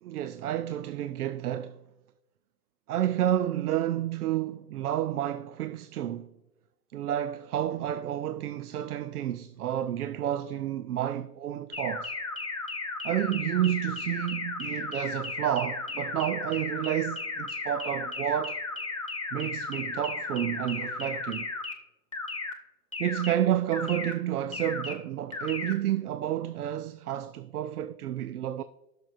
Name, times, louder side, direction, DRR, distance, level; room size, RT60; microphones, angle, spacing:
voice 1, 0.0-1.8 2.9-6.3 6.9-12.1 13.0-18.6 19.3-21.5 23.0-28.6, right 11 dB, 70° right, 0.5 m, -30 dB
sound 1, 11.7-21.7 22.1-22.5 22.9-23.3 23.7-24.1 24.5-24.9 25.3-25.7, left 3 dB, 25° left, 0.3 m, -35 dB
13.5 x 6.6 x 2.5 m
hypercardioid pair, 140°, 48 cm